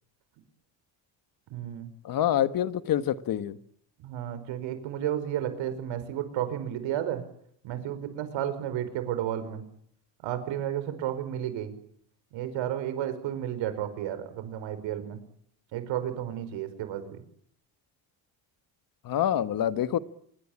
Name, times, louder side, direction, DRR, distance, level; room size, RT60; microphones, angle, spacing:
voice 1, 1.5-1.9 4.0-7.2 7.6-9.6 10.2-11.7 12.3-15.2 15.7-17.2, right 11 dB, 85° right, 11 dB, 5.1 m, -32 dB
voice 2, 2.0-3.6 19.0-20.0, left 11 dB, 50° left, 13 dB, 1.4 m, -26 dB
26.0 x 22.5 x 8.7 m, 0.68 s
cardioid pair, 170°, 44 cm